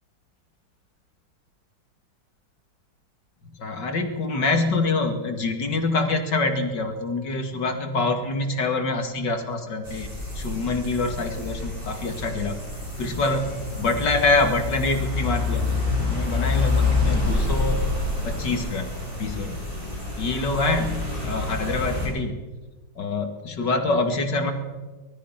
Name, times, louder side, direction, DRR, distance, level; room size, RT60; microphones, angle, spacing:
voice 1, 3.6-10.1 10.4-12.6 13.0-13.5 13.8-15.7 16.0-17.8 18.2-18.9 19.2-19.6 20.2-22.3 23.0-24.5, left 3 dB, 65° left, 5 dB, 2.8 m, -25 dB
sound 1, 9.8-22.1, left 3 dB, 25° right, 6.9 m, -27 dB
25.0 x 19.5 x 5.8 m, 1.2 s
omnidirectional pair, 2.0 m